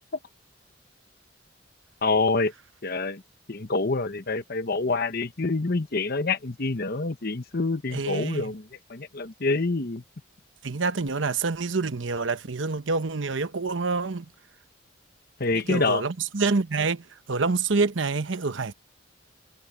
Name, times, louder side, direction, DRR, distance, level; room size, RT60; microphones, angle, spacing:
voice 1, 2.0-2.5 2.8-3.2 3.5-8.6 8.9-10.0 15.4-16.0, left 3 dB, 55° left, 1.1 m, -26 dB
voice 2, 7.9-8.5 10.6-14.3 15.5-18.7, right 4 dB, 80° right, 1.0 m, -27 dB
head